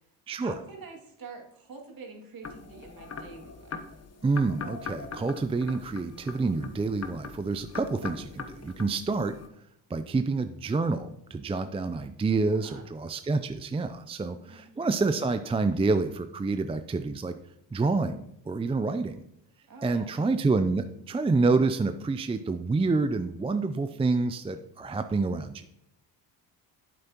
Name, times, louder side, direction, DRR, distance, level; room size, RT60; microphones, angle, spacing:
voice 1, 0.3-3.7 12.5-12.8 14.4-14.6 15.5-15.6 19.7-20.1, right 4 dB, 55° right, 1 dB, 2.4 m, -46 dB
sound 1, 2.4-9.5, left 5 dB, 35° left, 1.0 m, -42 dB
voice 2, 4.2-9.4 9.9-17.3 17.7-19.2 19.8-25.6, right 3 dB, 15° right, 9 dB, 0.5 m, -28 dB
9.0 x 7.7 x 2.9 m, 0.76 s
supercardioid pair, 70°, 43 cm